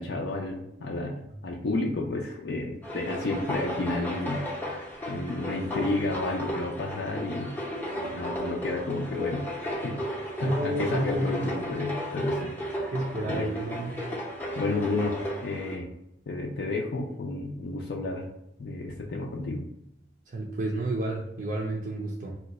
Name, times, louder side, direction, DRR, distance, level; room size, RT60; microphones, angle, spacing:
voice 1, 0.0-7.5 7.9-10.0 10.4-12.9 13.2-13.5 14.6-15.9 16.3-18.3 18.6-19.6, left 2 dB, 60° left, -1 dB, 0.4 m, -31 dB
sound 1, 2.8-15.8, equal, 10° left, 0.6 m, -34 dB
voice 2, 10.4-11.5 12.9-14.1 20.3-22.4, right 1 dB, 45° right, -2 dB, 0.4 m, -31 dB
2.8 x 2.2 x 4.0 m, 0.82 s
head